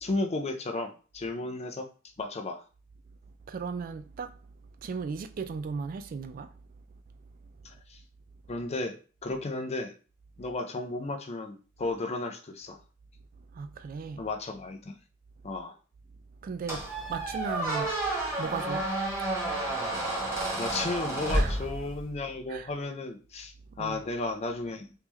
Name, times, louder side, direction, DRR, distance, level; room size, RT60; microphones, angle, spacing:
voice 1, 0.0-1.9 2.2-2.6 7.6-8.0 8.5-9.0 9.2-9.9 10.4-12.8 14.2-15.0 15.4-15.8 20.6-24.9, left 2 dB, 35° left, 0.5 m, -34 dB
voice 2, 3.5-4.3 4.8-6.5 13.5-14.2 16.4-17.9 18.4-18.9 21.3-21.5 22.5-22.7 23.8-24.0, right 5 dB, 45° right, 0.3 m, -36 dB
Squeak, 16.7-22.2, right 1 dB, 15° right, 1.3 m, -30 dB
3.6 x 3.2 x 3.0 m
head